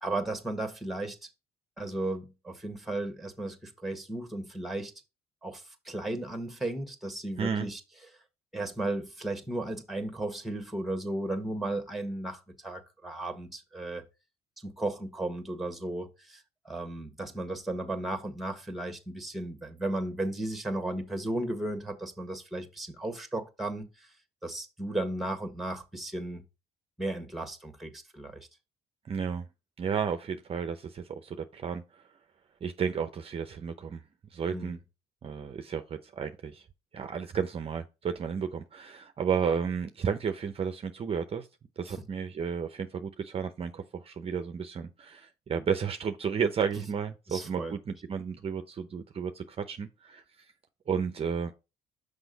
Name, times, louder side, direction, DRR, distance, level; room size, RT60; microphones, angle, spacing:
voice 1, 0.0-1.2 1.8-4.9 5.4-7.8 8.5-14.0 14.6-24.1 24.4-26.4 27.0-28.4 34.5-34.8 41.9-42.0 47.3-47.8, right 2 dB, ahead, 1.5 m, -35 dB
voice 2, 7.4-7.7 29.1-29.5 29.8-32.0 32.6-34.0 34.3-34.8 35.2-36.7 36.9-41.5 41.8-50.2 50.9-51.5, right 6 dB, 35° right, 0.7 m, -32 dB
6.1 x 5.1 x 3.9 m
cardioid pair, 110°, 17 cm